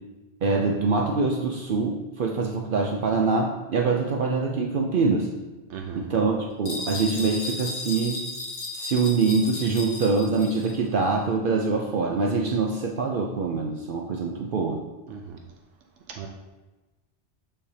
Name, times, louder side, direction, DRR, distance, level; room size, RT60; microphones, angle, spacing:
voice 1, 0.4-5.3 5.9-8.2 8.7-14.8, right 4 dB, 60° right, 1 dB, 0.7 m, -24 dB
voice 2, 5.7-6.1 15.1-15.4 16.1-16.3, right 7 dB, 90° right, 1 dB, 0.9 m, -37 dB
sound 1, 6.6-10.8, left 2 dB, 50° left, 1.2 m, -35 dB
6.5 x 5.5 x 2.8 m, 1.1 s
omnidirectional pair, 1.2 m